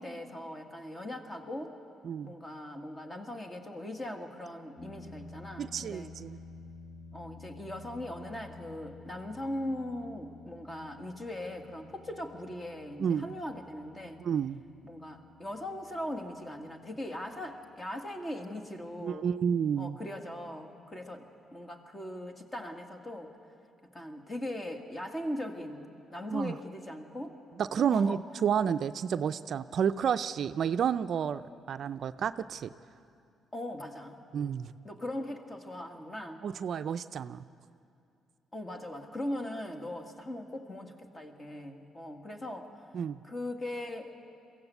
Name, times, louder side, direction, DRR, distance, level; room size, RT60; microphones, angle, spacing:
voice 1, 0.0-1.8 2.2-6.1 7.1-14.2 14.8-19.3 19.8-23.3 23.9-27.4 27.9-28.2 33.5-34.2 34.8-36.4 38.5-42.8 43.2-44.1, left 1 dB, 25° left, 4 dB, 1.9 m, -40 dB
sound 1, 4.8-23.2, left 3 dB, 40° left, 2.4 m, -53 dB
voice 2, 5.6-6.4 13.0-13.3 14.2-14.6 19.0-20.0 26.3-26.6 27.6-31.4 31.7-32.7 34.3-34.7 36.4-37.4 42.9-43.2, right 7 dB, 60° right, 11 dB, 0.4 m, -30 dB
22.5 x 15.5 x 8.1 m, 2.5 s
cardioid pair, 90°, 0 cm